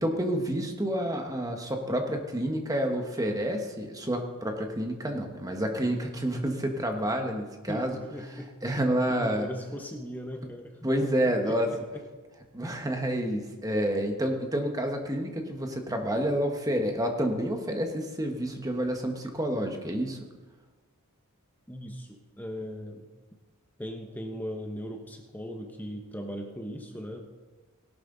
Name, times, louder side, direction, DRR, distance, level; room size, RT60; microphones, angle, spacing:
voice 1, 0.0-8.0 8.6-9.5 10.8-11.7 12.5-20.2, equal, 15° right, 4 dB, 1.4 m, -29 dB
voice 2, 7.7-8.5 9.1-12.0 21.7-23.1 23.8-27.2, equal, 10° left, 3 dB, 1.0 m, -39 dB
17.5 x 11.5 x 3.9 m, 1.3 s
head